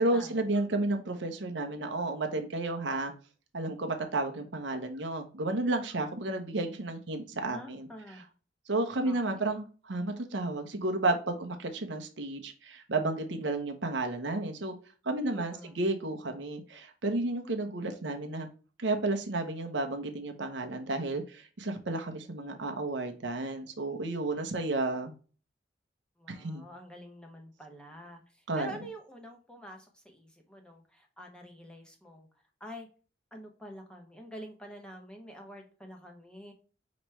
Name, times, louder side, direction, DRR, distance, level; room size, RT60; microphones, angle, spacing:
voice 1, 0.0-3.1 3.5-7.9 8.7-14.7 15.0-18.5 18.8-25.1 26.3-26.6 28.5-28.7, right 2 dB, 75° right, 5 dB, 0.9 m, -32 dB
voice 2, 7.5-8.3 9.0-9.4 15.3-15.8 26.2-32.3 32.6-32.9 33.3-36.5, equal, 5° left, 2 dB, 1.0 m, -47 dB
5.0 x 3.1 x 3.2 m, 0.37 s
head